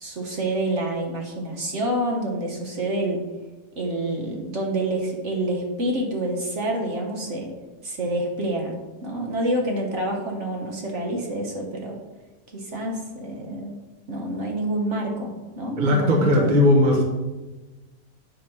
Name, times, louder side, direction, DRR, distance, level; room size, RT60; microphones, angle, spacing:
voice 1, 0.0-3.2 3.8-7.5 7.8-12.0 12.5-13.8 14.1-16.6, right 1 dB, 50° right, 0 dB, 1.3 m, -27 dB
voice 2, 15.8-17.0, left 1 dB, 35° right, 1 dB, 1.1 m, -18 dB
8.8 x 3.6 x 6.0 m, 1.2 s
omnidirectional pair, 1.7 m